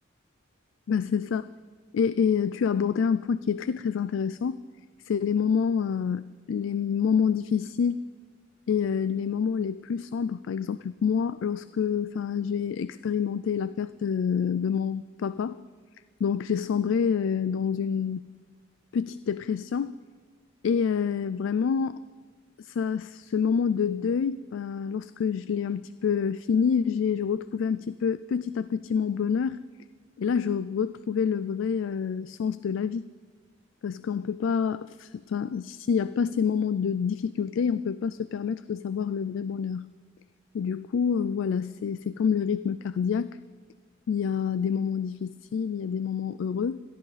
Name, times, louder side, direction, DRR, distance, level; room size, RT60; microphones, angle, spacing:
voice 1, 0.9-1.4 1.9-4.6 5.0-8.0 8.7-15.6 16.2-18.3 18.9-19.9 20.6-22.0 22.6-29.6 30.2-33.0 33.8-39.9 40.5-43.3 44.1-46.8, left 6 dB, 70° left, 15 dB, 0.3 m, -27 dB
22.0 x 14.5 x 4.1 m, 1.5 s
head